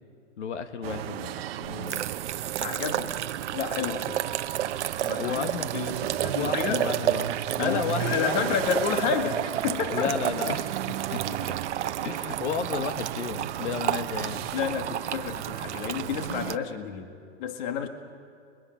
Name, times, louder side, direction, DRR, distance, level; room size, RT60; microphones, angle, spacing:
voice 1, 0.4-2.1 5.2-5.7 6.3-8.5 9.9-11.6 12.0-14.5 17.8-17.9, left 6 dB, 80° left, 8 dB, 1.5 m, -33 dB
sound 1, 0.8-16.6, right 12 dB, 60° right, 0.9 m, -35 dB
sound 2, 1.6-16.6, right 11 dB, 90° right, 0.8 m, -32 dB
voice 2, 2.6-3.1 3.5-4.4 5.0-6.9 7.6-10.1 14.5-17.9, left 7 dB, 45° left, 6 dB, 1.9 m, -30 dB
29.5 x 22.5 x 5.8 m, 2.4 s
hypercardioid pair, 155°, 34 cm